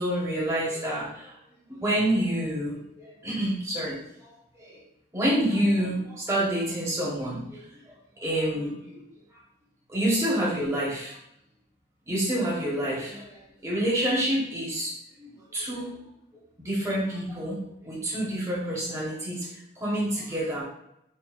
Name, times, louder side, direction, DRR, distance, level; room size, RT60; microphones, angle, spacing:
voice 1, 0.0-1.3 1.8-4.0 4.6-4.8 5.1-7.4 8.2-9.0 9.9-11.1 12.1-14.9 15.2-15.9 16.6-19.5 19.8-20.6, right 1 dB, 15° right, -7 dB, 1.1 m, -28 dB
4.4 x 2.7 x 2.5 m, 0.80 s
head